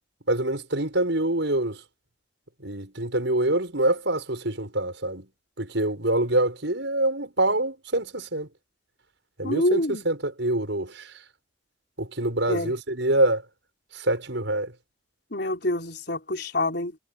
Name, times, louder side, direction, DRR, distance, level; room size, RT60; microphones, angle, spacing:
voice 1, 0.3-1.8 2.6-5.3 5.6-8.5 9.4-11.1 12.0-13.4 13.9-14.7, right 1 dB, 70° right, 6.7 m, -25 dB
voice 2, 9.4-10.0 12.5-12.7 15.3-16.9, left 1 dB, 55° left, 4.5 m, -26 dB
head